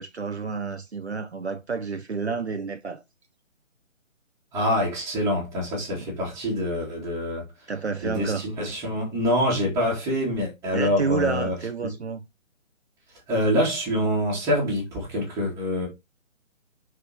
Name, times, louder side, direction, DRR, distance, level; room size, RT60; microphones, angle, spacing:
voice 1, 0.0-3.0 7.7-8.5 10.7-12.2, right 5 dB, 55° right, 0.9 m, -29 dB
voice 2, 4.5-7.4 8.0-11.6 13.3-15.9, equal, 10° right, 2.9 m, -25 dB
6.2 x 5.5 x 4.4 m
figure-of-eight pair, 145°, 39 cm